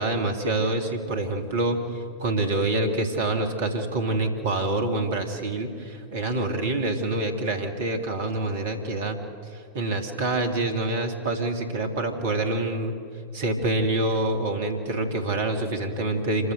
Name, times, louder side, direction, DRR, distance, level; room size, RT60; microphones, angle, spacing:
voice 1, 0.0-9.2 9.5-12.9 13.3-16.5, right 2 dB, 55° right, 5 dB, 2.5 m, -26 dB
26.5 x 14.5 x 8.0 m, 2.5 s
figure-of-eight pair, 90°, 0 cm